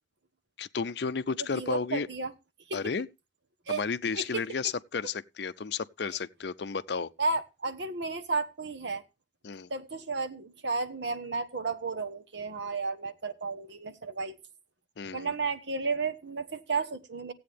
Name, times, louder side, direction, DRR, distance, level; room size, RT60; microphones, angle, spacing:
voice 1, 0.6-2.1 2.7-3.1 3.7-7.1 9.4-9.7 15.0-15.3, left 5 dB, 60° left, 0.5 m, -32 dB
voice 2, 1.5-2.3 2.7-2.9 3.7-3.8 4.1-4.4 7.2-9.0 9.7-14.4 15.1-17.3, right 4 dB, 65° right, 1.2 m, -33 dB
16.0 x 8.4 x 3.4 m
head